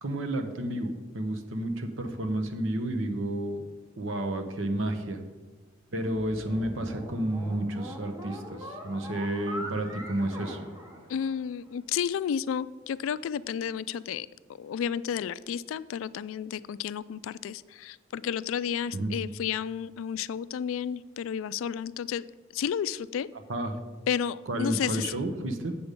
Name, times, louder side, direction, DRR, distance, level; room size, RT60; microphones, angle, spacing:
voice 1, 0.0-3.6 4.0-5.2 5.9-10.6 18.9-19.1 23.5-23.8 24.5-25.8, right 1 dB, 70° right, 6 dB, 1.0 m, -31 dB
sound 1, 6.2-11.7, equal, 15° right, 1.1 m, -42 dB
voice 2, 11.1-14.3 14.6-22.3 22.5-23.3 24.1-25.2, left 8 dB, 75° left, 19 dB, 0.3 m, -32 dB
8.2 x 6.9 x 5.1 m, 1.3 s
head